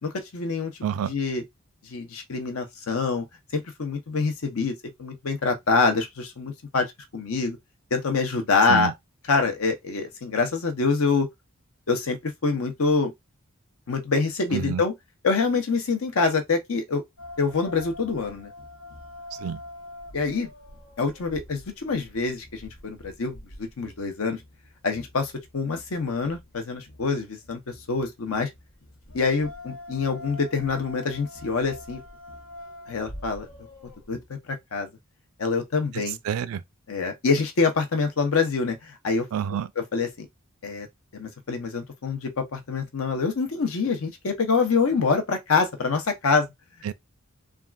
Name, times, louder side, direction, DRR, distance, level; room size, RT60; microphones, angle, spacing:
voice 1, 0.0-0.7 1.1-1.4 1.9-3.2 3.5-6.9 7.1-7.6 7.9-8.9 9.3-11.3 11.9-13.1 13.9-14.9 15.2-17.0 17.4-18.5 20.1-20.5 21.0-24.4 24.8-27.6 27.9-28.5 29.1-32.0 32.9-33.5 34.1-34.2 34.5-34.9 35.4-36.2 36.9-39.3 39.8-40.3 40.6-40.9 41.1-46.5, left 4 dB, 70° left, 0.7 m, -25 dB
voice 2, 0.8-1.1 8.7-8.9 14.5-14.8 19.4-19.6 35.9-36.6 39.3-39.7 46.8-46.9, right 8 dB, 75° right, 0.3 m, -28 dB
sound 1, 17.2-34.3, left 1 dB, 90° left, 1.1 m, -45 dB
3.5 x 2.4 x 2.3 m
head